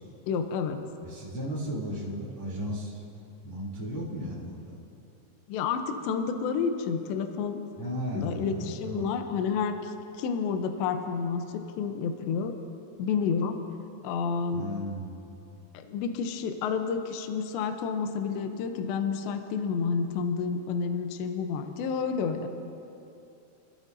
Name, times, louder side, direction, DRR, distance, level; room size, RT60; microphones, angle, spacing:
voice 1, 0.3-0.8 5.5-7.6 8.1-12.6 13.0-13.6 14.0-14.7 15.7-22.5, left 6 dB, 75° left, 6 dB, 2.8 m, -30 dB
voice 2, 1.0-3.0 3.4-4.8 7.7-9.1 14.5-15.2, equal, 15° left, -7 dB, 0.9 m, -35 dB
28.5 x 12.5 x 2.7 m, 2.7 s
omnidirectional pair, 5.6 m